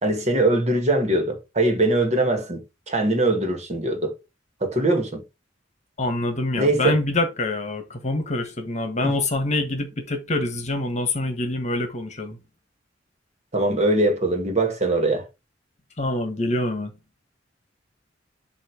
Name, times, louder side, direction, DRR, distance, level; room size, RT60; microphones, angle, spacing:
voice 1, 0.0-4.2 4.6-5.2 6.6-7.0 9.0-9.2 13.5-15.2, right 2 dB, 40° right, 1.8 m, -22 dB
voice 2, 6.0-12.4 16.0-16.9, left 2 dB, 40° left, 1.4 m, -25 dB
7.6 x 2.8 x 5.1 m
head